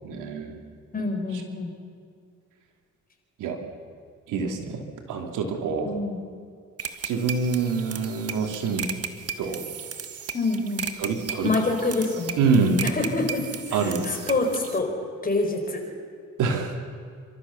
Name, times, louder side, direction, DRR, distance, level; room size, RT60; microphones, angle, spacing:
voice 1, 0.0-0.5 3.4-3.6 4.3-5.9 7.0-8.9 9.4-9.6 11.0-11.5 12.4-12.8 13.7-14.1 16.4-16.8, right 4 dB, 90° right, 4 dB, 2.7 m, -25 dB
voice 2, 0.9-1.7 5.8-6.2 10.3-10.9 11.4-12.4 12.8-13.4 13.7-14.9 15.2-15.8, left 3 dB, 30° left, 3 dB, 4.7 m, -26 dB
sound 1, 6.8-14.8, right 7 dB, 50° right, 1.5 m, -36 dB
28.5 x 13.5 x 7.0 m, 2.2 s
cardioid pair, 90°, 30 cm